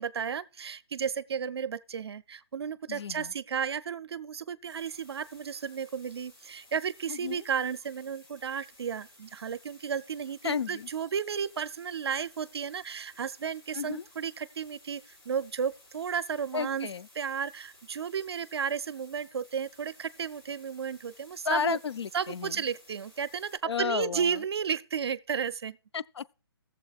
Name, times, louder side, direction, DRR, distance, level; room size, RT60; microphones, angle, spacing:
voice 1, 0.0-16.9 17.1-21.8 22.1-25.8, right 7 dB, 75° right, 0.5 m, -33 dB
voice 2, 2.9-3.3 7.1-7.4 10.4-10.9 13.7-14.0 16.5-17.1 21.4-22.6 23.6-24.4 25.9-26.3, left 6 dB, 90° left, 0.4 m, -32 dB
sound 1, 4.6-23.6, left 1 dB, 50° left, 4.8 m, -57 dB
18.0 x 7.1 x 2.4 m
hypercardioid pair, 160°, 14 cm